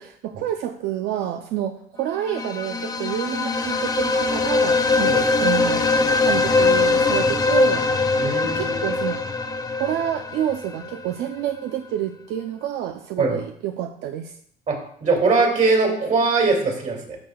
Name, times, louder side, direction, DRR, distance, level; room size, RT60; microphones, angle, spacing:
voice 1, 0.0-5.8 6.2-7.8 8.4-9.2 9.8-14.3, right 11 dB, 85° right, 5 dB, 0.6 m, -28 dB
sound 1, 2.2-11.0, left 3 dB, 20° left, 0.6 m, -21 dB
voice 2, 8.2-8.8 13.2-13.4 14.7-17.2, right 3 dB, 45° right, 1 dB, 2.5 m, -21 dB
11.5 x 6.7 x 2.3 m, 0.65 s
cardioid pair, 110°, 17 cm